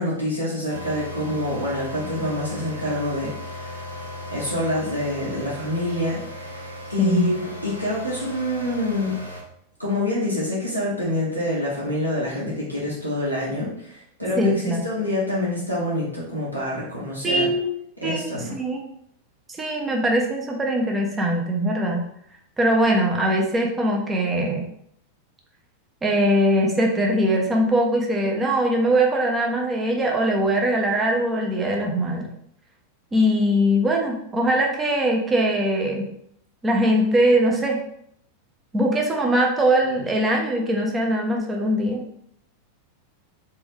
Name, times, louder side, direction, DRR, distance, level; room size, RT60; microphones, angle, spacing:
voice 1, 0.0-3.8 4.3-6.6 6.9-9.2 9.8-17.5 18.0-18.5, left 1 dB, 85° right, -7 dB, 1.4 m, -26 dB
sound 1, 0.7-9.4, left 1 dB, 90° left, 0.7 m, -37 dB
voice 2, 7.0-7.4 14.4-14.8 17.2-17.7 18.0-18.8 19.5-22.0 22.6-24.7 26.0-32.3 33.1-36.1 36.6-37.8 38.7-42.0, right 1 dB, 15° right, 0 dB, 0.8 m, -21 dB
3.4 x 3.0 x 3.5 m, 0.70 s
figure-of-eight pair, 90°, 0 cm